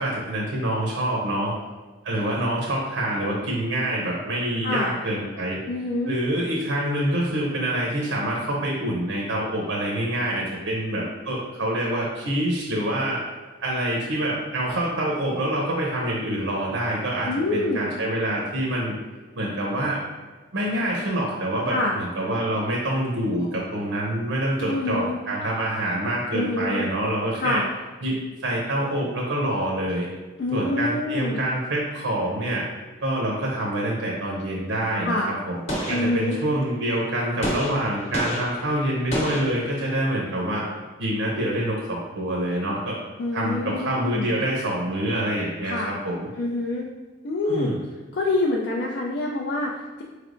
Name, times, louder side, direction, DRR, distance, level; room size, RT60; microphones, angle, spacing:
voice 1, 0.0-1.5 2.0-5.6 6.0-13.2 13.6-18.9 19.3-20.0 20.5-27.6 28.0-30.1 30.5-32.6 33.0-35.2 35.5-35.6 35.9-40.6 41.0-43.0 43.3-46.3 47.4-47.7, right 1 dB, 90° right, -3 dB, 0.7 m, -26 dB
voice 2, 5.7-6.2 17.3-17.8 21.7-22.0 24.6-25.2 26.3-26.9 27.4-27.7 30.4-31.4 35.0-35.3 35.9-36.4 43.2-44.3 45.6-45.9 46.3-46.9 47.2-47.7 48.1-50.0, left 2 dB, 55° left, -1 dB, 0.3 m, -26 dB
Gunshot gunfire, 35.7-36.7 37.4-40.2, equal, 35° left, 0.8 m, -31 dB
4.5 x 3.2 x 2.5 m, 1.3 s
head